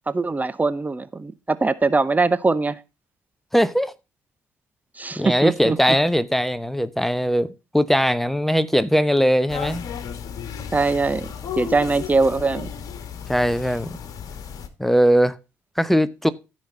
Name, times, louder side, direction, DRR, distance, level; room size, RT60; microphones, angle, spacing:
voice 1, 0.1-2.8 5.0-5.8 10.7-11.3 11.6-12.7, right 3 dB, 25° right, 0.9 m, -21 dB
voice 2, 3.5-3.9 5.2-9.8 13.3-13.9 14.8-15.4 15.8-16.3, equal, 5° left, 0.8 m, -20 dB
sound 1, 9.5-14.7, left 8 dB, 60° left, 1.7 m, -34 dB
14.5 x 5.3 x 3.8 m
hypercardioid pair, 50°, 7 cm